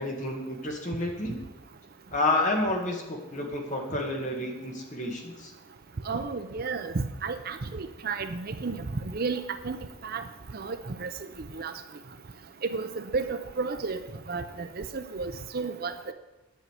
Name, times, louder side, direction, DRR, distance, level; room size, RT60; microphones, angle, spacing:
voice 1, 0.0-1.4 2.1-5.5, left 2 dB, 35° left, 1 dB, 1.9 m, -30 dB
voice 2, 6.1-9.8 10.0-10.2 10.5-11.1 11.5-11.7 12.6-14.0 14.3-16.1, right 4 dB, 45° right, 9 dB, 0.6 m, -32 dB
10.5 x 5.6 x 8.2 m, 1.1 s
head